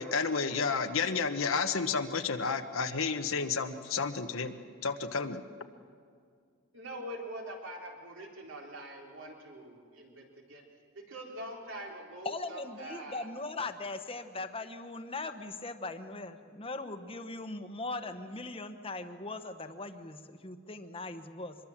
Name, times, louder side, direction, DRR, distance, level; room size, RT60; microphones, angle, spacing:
voice 1, 0.0-4.5 4.8-5.4, left 5 dB, 85° left, 7 dB, 1.2 m, -31 dB
voice 2, 6.7-10.6 10.9-13.3, right 1 dB, 70° right, 0 dB, 3.9 m, -44 dB
voice 3, 12.2-21.6, left 2 dB, 25° left, 8 dB, 1.2 m, -40 dB
25.0 x 22.0 x 7.4 m, 2.2 s
head